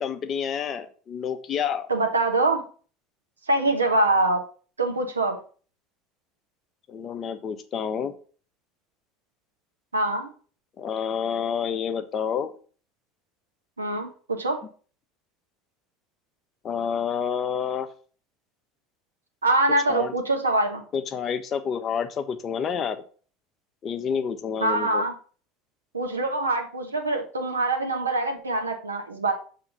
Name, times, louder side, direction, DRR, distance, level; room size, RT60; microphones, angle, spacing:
voice 1, 0.0-1.9 6.9-8.1 10.8-12.5 16.6-17.9 19.9-20.1 20.9-23.0 23.8-25.1, left 7 dB, 35° left, 9 dB, 0.9 m, -29 dB
voice 2, 1.9-2.6 3.5-4.4 4.8-5.4 9.9-10.3 13.8-14.6 19.4-20.8 24.6-25.1 25.9-29.3, right 2 dB, 85° right, 3 dB, 1.2 m, -24 dB
7.0 x 3.7 x 5.4 m, 0.41 s
figure-of-eight pair, 70°, 0 cm